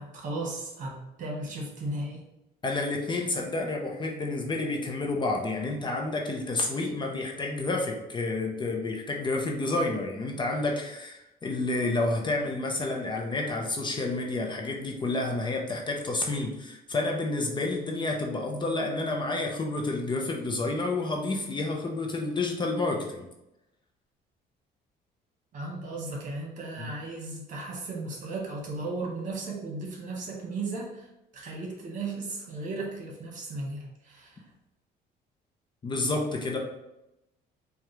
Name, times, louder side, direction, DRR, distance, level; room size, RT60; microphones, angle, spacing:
voice 1, 0.0-2.2 25.5-34.4, right 2 dB, 50° right, -2 dB, 1.3 m, -36 dB
voice 2, 2.6-23.3 26.8-26.9 35.8-36.6, left 2 dB, 25° left, 1 dB, 0.6 m, -30 dB
4.7 x 2.4 x 3.3 m, 0.91 s
cardioid pair, 110°, 17 cm